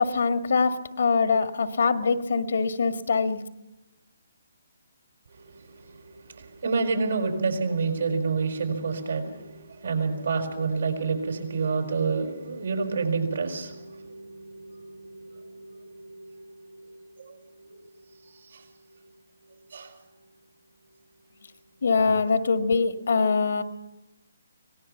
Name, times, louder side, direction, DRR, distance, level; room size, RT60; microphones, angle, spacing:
voice 1, 0.0-3.4 21.8-23.6, left 4 dB, 70° left, 8 dB, 1.7 m, -23 dB
voice 2, 5.4-16.9 17.2-17.3 18.4-18.6 19.7-19.9, right 4 dB, 70° right, 4 dB, 5.5 m, -29 dB
25.0 x 19.0 x 5.9 m, 0.96 s
figure-of-eight pair, 145°, 0 cm